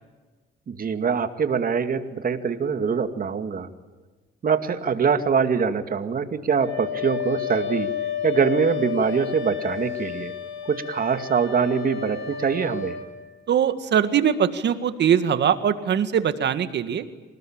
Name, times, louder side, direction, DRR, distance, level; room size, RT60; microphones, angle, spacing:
voice 1, 0.7-3.7 4.4-7.9 8.2-10.3 10.7-13.0, right 6 dB, 45° right, 9 dB, 2.3 m, -23 dB
Wind instrument woodwind instrument, 6.6-13.1, left 8 dB, 85° left, 4.6 m, -31 dB
voice 2, 13.5-17.0, right 8 dB, 60° right, 10 dB, 2.0 m, -21 dB
27.5 x 19.0 x 8.9 m, 1.3 s
cardioid pair, 90°, 20 cm